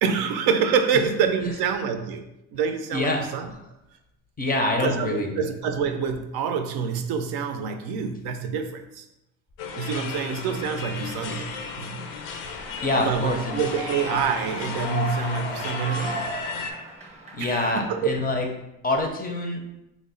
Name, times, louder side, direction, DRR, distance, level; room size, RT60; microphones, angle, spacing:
voice 1, 0.0-2.3 2.5-3.5 4.8-9.1 9.7-12.0 13.0-16.3 17.4-18.2, right 6 dB, 70° right, 6 dB, 0.5 m, -26 dB
voice 2, 4.4-5.3 12.8-13.6 17.3-18.5 18.8-19.6, left 2 dB, 25° left, 2 dB, 0.5 m, -25 dB
sound 1, 9.6-16.7, left 5 dB, 80° left, 0.6 m, -35 dB
Human voice / Clapping / Cheering, 12.4-18.4, equal, 15° right, 0.7 m, -36 dB
3.1 x 2.1 x 3.7 m, 0.88 s
supercardioid pair, 95°, 40 cm